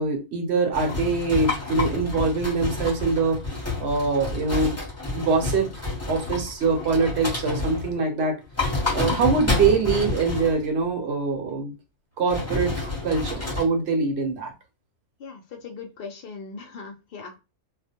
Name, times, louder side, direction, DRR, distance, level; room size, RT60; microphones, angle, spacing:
voice 1, 0.0-3.4 3.8-4.8 5.1-8.4 8.9-11.7 12.2-14.5, right 4 dB, 55° right, 3 dB, 0.9 m, -24 dB
sound 1, 0.7-8.0 8.4-10.7 12.3-13.6, left 3 dB, 15° left, 0.7 m, -29 dB
voice 2, 9.0-9.4 15.2-17.4, left 5 dB, 65° left, 4 dB, 0.5 m, -38 dB
2.4 x 2.2 x 2.8 m, 0.28 s
omnidirectional pair, 1.5 m